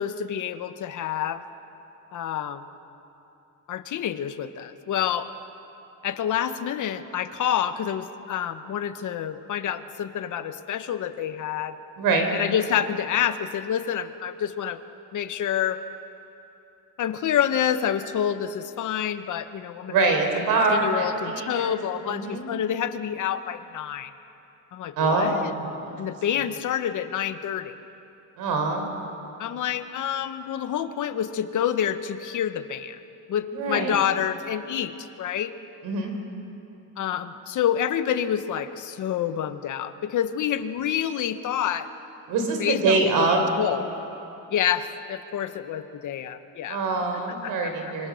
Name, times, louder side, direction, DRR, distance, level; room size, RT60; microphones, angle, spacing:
voice 1, 0.0-1.4 2.1-2.7 3.7-5.3 6.0-11.8 12.3-14.8 15.1-15.8 17.0-19.9 20.3-20.4 20.7-24.1 24.7-25.5 26.0-27.7 29.4-33.0 33.3-35.5 37.0-41.9 42.6-43.3 43.6-43.9 44.5-46.8 47.4-47.9, left 9 dB, 60° left, 10 dB, 1.1 m, -28 dB
voice 2, 12.0-12.3 19.9-21.8 22.1-22.5 25.0-26.0 28.4-28.8 33.4-34.0 35.8-36.1 42.3-43.4 46.7-48.1, right 3 dB, 90° right, 4 dB, 4.2 m, -24 dB
25.5 x 25.5 x 6.4 m, 2.9 s
cardioid pair, 150°, 35 cm